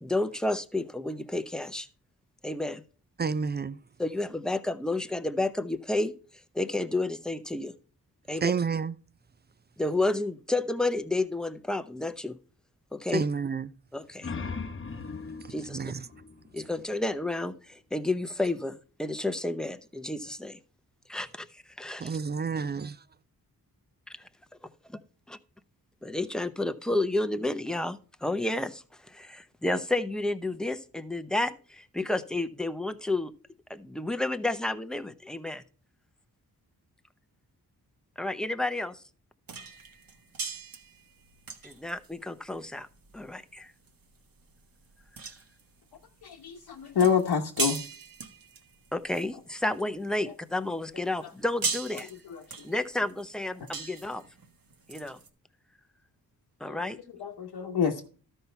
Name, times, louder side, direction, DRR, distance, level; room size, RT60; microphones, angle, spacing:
voice 1, 0.0-1.9 2.4-2.8 4.0-6.1 6.5-7.7 8.3-8.5 9.8-12.4 12.9-13.2 13.9-14.3 15.5-15.8 16.5-20.6 21.1-22.1 24.1-24.3 24.9-25.0 25.3-25.4 26.0-33.3 33.7-35.6 38.2-39.0 41.6-42.9 43.1-43.7 48.9-52.1 52.6-54.2 54.9-55.2 56.6-57.0, left 2 dB, ahead, 0.8 m, -31 dB
voice 2, 3.2-3.8 8.4-9.0 13.1-13.7 15.7-16.0 22.0-22.9, right 5 dB, 25° right, 0.4 m, -29 dB
sound 1, 13.9-17.4, left 4 dB, 35° left, 0.9 m, -40 dB
sound 2, 39.5-50.1 50.5-55.3, right 4 dB, 60° right, 1.5 m, -39 dB
voice 3, 46.2-47.8 52.3-52.4 56.7-56.9 57.2-58.1, left 7 dB, 75° left, 1.0 m, -27 dB
13.0 x 5.6 x 4.5 m
cardioid pair, 75°, 38 cm